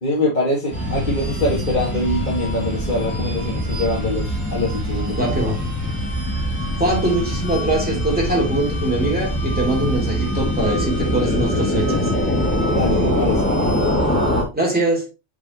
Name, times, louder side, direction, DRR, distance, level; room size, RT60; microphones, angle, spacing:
voice 1, 0.0-5.5 12.7-13.4, left 1 dB, 45° left, 2.0 m, -24 dB
sound 1, 0.7-14.4, left 1 dB, 10° left, 2.6 m, -23 dB
voice 2, 5.2-5.6 6.8-12.1 14.5-15.1, right 2 dB, 10° right, 2.8 m, -22 dB
7.5 x 4.8 x 3.0 m
omnidirectional pair, 1.2 m